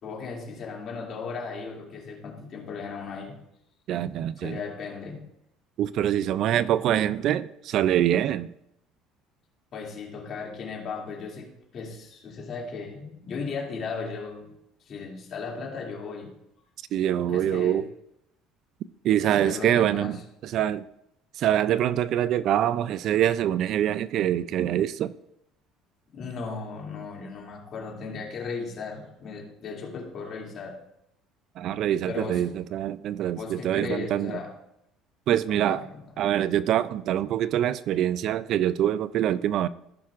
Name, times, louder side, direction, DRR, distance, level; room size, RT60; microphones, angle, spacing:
voice 1, 0.0-3.4 4.4-5.2 9.7-14.5 14.9-16.3 17.2-17.8 19.1-20.2 26.1-30.8 32.1-32.4 33.3-34.5 35.5-36.0, left 4 dB, 50° left, 2.5 m, -36 dB
voice 2, 3.9-4.6 5.8-8.5 16.9-17.8 19.0-20.2 20.4-20.9 21.4-25.1 31.6-34.3 35.3-35.8 36.2-39.7, right 11 dB, 60° right, 0.3 m, -24 dB
16.0 x 5.8 x 2.5 m
cardioid pair, 115°, 0 cm